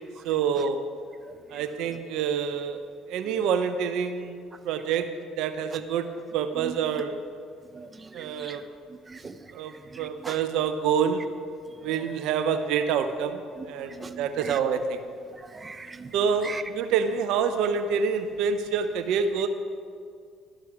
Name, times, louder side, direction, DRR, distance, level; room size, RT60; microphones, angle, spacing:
voice 1, 0.2-0.8 1.5-2.8 3.1-6.1 6.3-7.2 8.1-8.6 9.5-11.3 11.8-15.0 16.1-19.5, right 6 dB, 75° right, 9 dB, 0.6 m, -27 dB
voice 2, 7.7-8.6 9.1-9.3 9.9-10.4 13.6-13.7 13.9-14.6 15.4-16.1 16.4-16.6, right 4 dB, 25° right, 10 dB, 0.5 m, -40 dB
12.5 x 6.1 x 4.7 m, 2.2 s
supercardioid pair, 70°, 0 cm